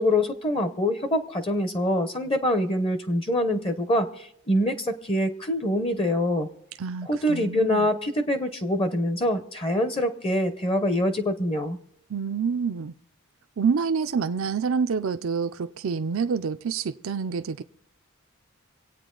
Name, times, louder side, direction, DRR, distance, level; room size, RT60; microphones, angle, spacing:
voice 1, 0.0-6.5 7.1-11.8, left 1 dB, 25° left, 0.8 m, -25 dB
voice 2, 6.8-7.9 12.1-12.9 13.6-17.6, right 5 dB, 65° right, 0.5 m, -27 dB
26.0 x 8.8 x 3.8 m
head